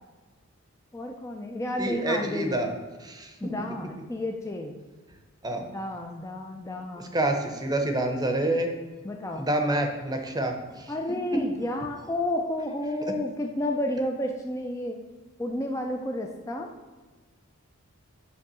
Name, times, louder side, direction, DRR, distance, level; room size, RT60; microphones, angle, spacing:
voice 1, 0.9-2.7 3.4-4.8 5.6-7.2 9.0-9.5 10.9-15.0 15.4-16.7, left 1 dB, 15° left, 1 dB, 0.4 m, -31 dB
voice 2, 1.8-2.7 3.0-3.5 5.4-5.6 7.0-8.7 9.3-10.9 11.3-11.5, right 1 dB, 20° right, 5 dB, 0.8 m, -27 dB
9.5 x 3.5 x 6.1 m, 1.3 s
head